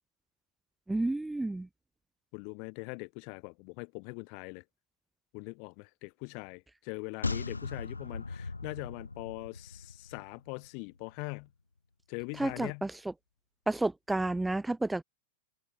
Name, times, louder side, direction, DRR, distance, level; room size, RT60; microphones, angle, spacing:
voice 1, 0.9-1.7 12.4-12.9 13.7-15.0, right 2 dB, 5° right, 0.8 m, -30 dB
voice 2, 2.3-4.6 5.3-11.5 12.1-12.9, left 40 dB or more, 50° left, 1.7 m, -42 dB
sound 1, 7.2-10.7 11.0-11.1, left 3 dB, 90° left, 2.0 m, -38 dB
figure-of-eight pair, 95°, 0 cm